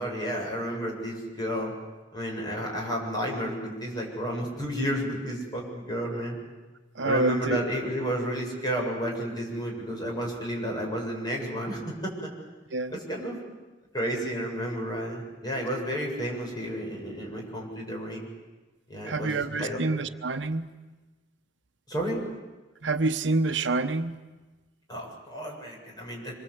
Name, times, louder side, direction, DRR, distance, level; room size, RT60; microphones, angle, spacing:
voice 1, 0.0-1.7 2.1-6.4 7.0-12.3 12.9-13.4 13.9-18.3 18.9-19.3 19.6-19.8 21.9-22.2 24.9-26.3, equal, 25° left, -1 dB, 7.4 m, -31 dB
voice 2, 6.9-7.6 12.7-12.9 19.1-20.7 22.8-24.2, right 3 dB, 80° right, 9 dB, 1.1 m, -27 dB
26.5 x 23.5 x 8.2 m, 1.2 s
head